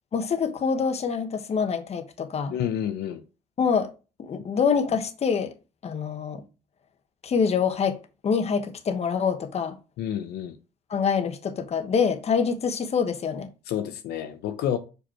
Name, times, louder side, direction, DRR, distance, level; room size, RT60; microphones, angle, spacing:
voice 1, 0.1-2.5 3.6-3.9 4.2-5.5 5.8-6.4 7.2-8.0 8.2-9.8 10.9-13.5, left 6 dB, 40° left, 1.1 m, -25 dB
voice 2, 2.5-3.2 10.0-10.6 13.7-14.8, left 10 dB, 75° left, 0.8 m, -29 dB
6.5 x 5.2 x 4.4 m
cardioid pair, 110°, 17 cm